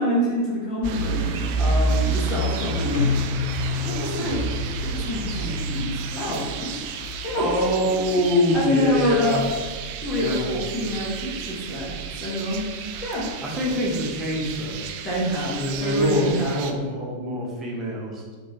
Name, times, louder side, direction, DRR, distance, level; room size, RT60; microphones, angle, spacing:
voice 1, 0.0-3.2 3.5-4.4 4.8-6.5 7.2-7.4 7.9-8.2 8.5-9.4 10.0-12.7 13.0-13.3 15.0-16.6, left 1 dB, 25° left, -6 dB, 1.4 m, -26 dB
sound 1, 0.8-16.7, right 3 dB, 45° right, 0.4 m, -30 dB
Keyboard (musical), 2.9-6.6, left 7 dB, 70° left, 0.5 m, -31 dB
voice 2, 7.4-9.4 10.1-10.5 13.4-14.9 15.5-18.3, equal, 25° right, -2 dB, 1.2 m, -25 dB
4.8 x 3.6 x 3.0 m, 1.5 s
figure-of-eight pair, 90°, 0 cm